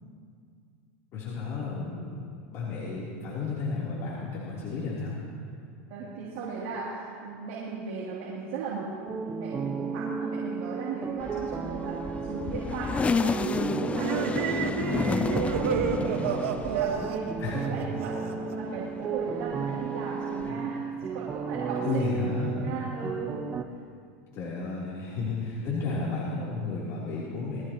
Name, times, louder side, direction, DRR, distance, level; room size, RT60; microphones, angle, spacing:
voice 1, 1.1-2.2 2.5-5.1 15.7-16.3 17.4-17.7 20.4-20.6 21.8-22.5 24.3-27.6, left 4 dB, 45° left, -8 dB, 3.5 m, -33 dB
voice 2, 5.9-8.9 9.1-14.5 14.9-16.3 16.6-22.0 22.6-23.5 25.2-25.3, right 5 dB, 60° right, -7 dB, 3.0 m, -37 dB
sound 1, 9.1-23.6, right 6 dB, 25° right, 0.7 m, -34 dB
sound 2, 11.2-18.1 18.5-20.5, left 5 dB, 20° left, 0.5 m, -32 dB
sound 3, 13.9-18.6, right 7 dB, 80° right, 1.5 m, -31 dB
21.0 x 14.5 x 3.1 m, 2.2 s
supercardioid pair, 115°, 7 cm